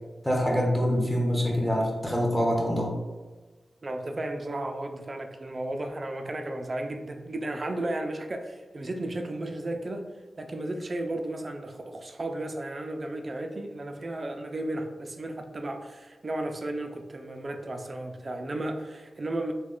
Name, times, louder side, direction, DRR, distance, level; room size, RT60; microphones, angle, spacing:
voice 1, 0.2-2.9, equal, 5° left, -2 dB, 0.8 m, -25 dB
voice 2, 3.8-19.5, right 1 dB, 40° right, 5 dB, 0.4 m, -34 dB
3.0 x 2.2 x 3.7 m, 1.3 s
wide cardioid pair, 95°, 0 cm